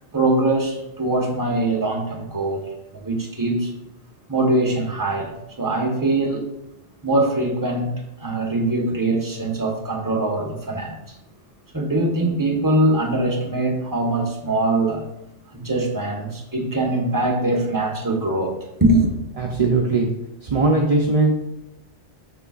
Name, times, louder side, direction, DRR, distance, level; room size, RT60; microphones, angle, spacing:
voice 1, 0.1-2.6 2.9-3.7 4.3-6.5 7.0-7.9 8.2-11.0 11.7-15.0 15.5-19.1, right 2 dB, 20° right, 1 dB, 1.0 m, -22 dB
voice 2, 19.4-20.1 20.4-21.3, right 3 dB, 40° right, 0 dB, 0.5 m, -19 dB
6.8 x 6.4 x 2.4 m, 0.89 s
omnidirectional pair, 1.2 m